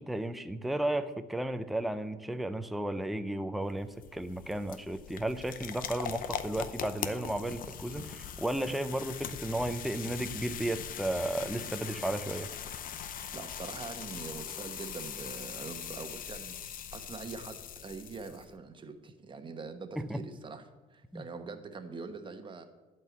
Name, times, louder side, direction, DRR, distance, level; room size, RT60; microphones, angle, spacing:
voice 1, 0.0-12.5 20.0-20.2 21.1-21.2, right 1 dB, ahead, 9 dB, 0.5 m, -34 dB
sound 1, 3.6-18.5, left 9 dB, 55° left, 0.7 m, -41 dB
voice 2, 13.3-20.6 20.9-22.6, right 4 dB, 30° right, 7 dB, 1.1 m, -43 dB
11.5 x 4.5 x 8.2 m, 1.2 s
cardioid pair, 110°, 17 cm